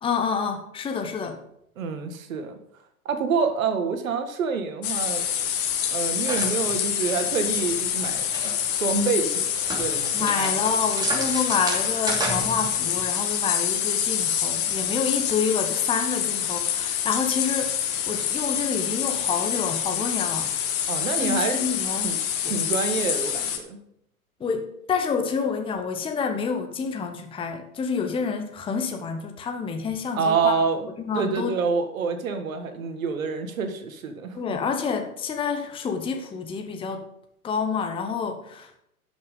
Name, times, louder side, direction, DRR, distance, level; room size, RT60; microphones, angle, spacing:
voice 1, 0.0-1.4 10.1-20.5 21.2-22.2 22.4-22.5 24.4-30.5 31.0-31.6 34.3-37.1 37.4-38.8, left 5 dB, 10° left, 5 dB, 1.0 m, -28 dB
voice 2, 1.8-2.6 3.1-5.3 5.9-10.5 20.9-21.6 22.0-22.2 22.4-23.8 30.2-30.9 31.1-34.6, right 5 dB, 65° right, 7 dB, 1.8 m, -27 dB
sound 1, 4.8-23.6, left 9 dB, 30° left, 1.4 m, -26 dB
sound 2, 6.2-8.8 9.3-13.1, right 2 dB, 10° right, 2.9 m, -33 dB
11.5 x 6.2 x 5.5 m, 0.75 s
figure-of-eight pair, 105°, 44 cm